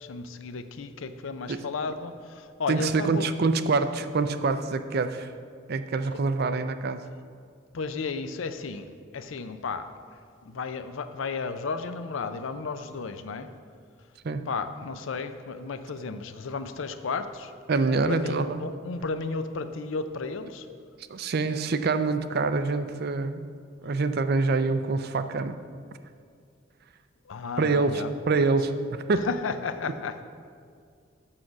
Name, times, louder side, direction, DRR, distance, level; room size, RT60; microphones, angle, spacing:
voice 1, 0.0-3.2 7.7-9.9 10.4-13.5 14.5-17.5 17.9-20.7 27.3-28.1 29.1-30.2, left 4 dB, 80° left, 10 dB, 0.5 m, -33 dB
voice 2, 2.7-5.3 5.7-7.0 14.2-14.4 17.7-18.6 21.1-23.4 23.8-25.6 27.6-29.3, right 3 dB, 55° right, 11 dB, 0.4 m, -26 dB
7.5 x 6.4 x 5.9 m, 2.2 s
head